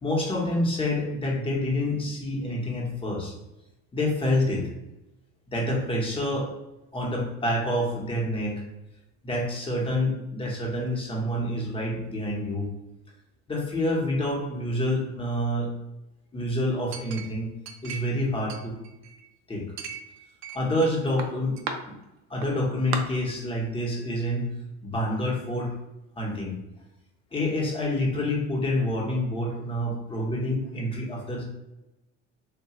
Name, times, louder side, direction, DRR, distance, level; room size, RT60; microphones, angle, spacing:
voice 1, 0.0-3.3 3.9-4.7 5.5-6.5 6.9-8.6 9.2-12.7 13.5-15.7 16.3-17.5 17.8-18.8 19.5-19.7 20.5-21.5 22.3-24.5 24.8-25.7 26.2-26.6 27.3-31.4, left 1 dB, 15° left, -2 dB, 0.9 m, -27 dB
Chink clink, 16.9-18.2 18.5-19.3 19.8-20.9 21.2-21.8 22.4-22.5 22.9-23.0, right 6 dB, 65° right, 0.5 m, -36 dB
2.9 x 2.2 x 2.9 m, 0.96 s
supercardioid pair, 95°, 31 cm